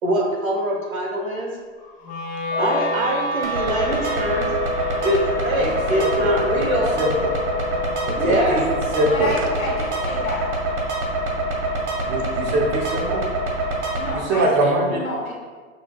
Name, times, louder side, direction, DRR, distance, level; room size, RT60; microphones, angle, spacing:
voice 1, 0.0-1.6 2.6-4.5 5.0-7.0 8.2-8.6, right 1 dB, 80° right, 0 dB, 1.2 m, -23 dB
Bark / Motor vehicle (road) / Siren, 1.8-10.5, left 1 dB, 50° left, 1.5 m, -37 dB
Wind instrument woodwind instrument, 2.0-12.2, left 3 dB, 20° left, 0.7 m, -31 dB
sound 1, 3.4-14.1, right 1 dB, 60° right, 1.3 m, -25 dB
voice 2, 5.6-6.7 7.0-7.3 8.0-9.3 12.1-13.2 14.1-15.0, right 1 dB, 25° right, 1 dB, 0.7 m, -23 dB
voice 3, 8.3-8.7 9.1-10.5 14.0-15.3, left 2 dB, 90° left, -2 dB, 1.1 m, -29 dB
6.0 x 2.8 x 2.3 m, 1.5 s
hypercardioid pair, 120°, 40 cm